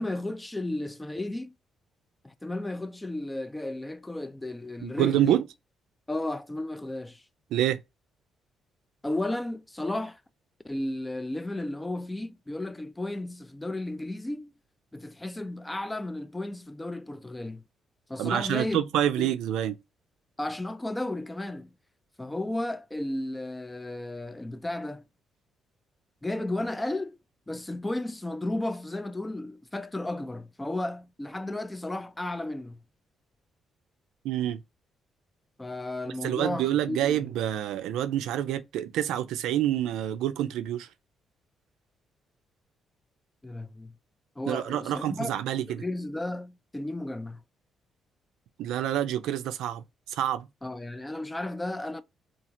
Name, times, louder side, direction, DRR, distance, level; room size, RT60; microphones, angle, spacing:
voice 1, 0.0-1.5 2.2-5.4 6.1-7.2 9.0-10.2 10.6-14.5 14.9-17.6 18.1-18.8 19.2-19.3 20.4-21.7 22.2-25.1 26.2-27.2 27.5-32.8 35.6-37.2 43.4-43.9 44.4-45.3 45.8-47.4 50.6-52.0, left 1 dB, 10° left, 0.3 m, -33 dB
voice 2, 4.8-5.4 7.5-7.8 18.2-19.7 34.2-34.6 36.2-40.9 44.5-45.8 48.6-50.5, right 11 dB, 90° right, 0.4 m, -27 dB
2.9 x 2.4 x 2.5 m
cardioid pair, 90°, 0 cm